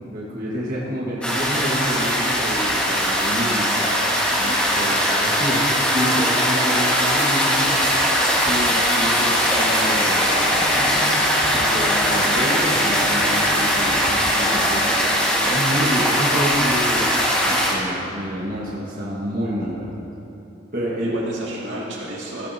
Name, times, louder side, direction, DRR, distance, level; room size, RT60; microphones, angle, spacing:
voice 1, 0.1-3.7 4.4-4.9 5.2-7.8 8.4-11.0 11.5-14.0 14.3-14.9 15.5-17.1 17.4-20.0 20.7-21.2, equal, 50° right, -6 dB, 1.5 m, -28 dB
sound 1, 1.2-17.7, equal, 5° left, 1.5 m, -20 dB
sound 2, 6.8-16.9, left 1 dB, 35° left, 0.9 m, -33 dB
voice 2, 21.0-22.5, right 1 dB, 85° right, -5 dB, 2.1 m, -33 dB
15.5 x 9.2 x 2.8 m, 2.8 s
head